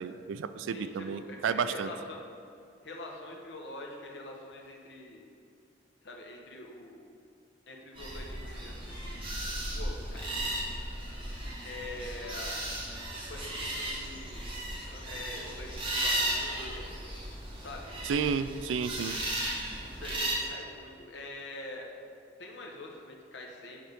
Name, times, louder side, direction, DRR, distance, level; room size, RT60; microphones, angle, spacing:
voice 1, 0.0-1.9 18.0-19.2, right 6 dB, 90° right, 12 dB, 0.3 m, -31 dB
voice 2, 0.7-2.2 2.8-5.3 6.0-7.1 7.7-10.8 11.6-12.6 13.3-14.4 14.9-16.9 17.6-18.0 19.8-21.9 22.4-23.8, left 2 dB, 65° left, 0 dB, 1.1 m, -45 dB
sound 1, 7.9-20.3, right 1 dB, 30° right, 1.2 m, -35 dB
10.0 x 3.5 x 5.1 m, 2.5 s
head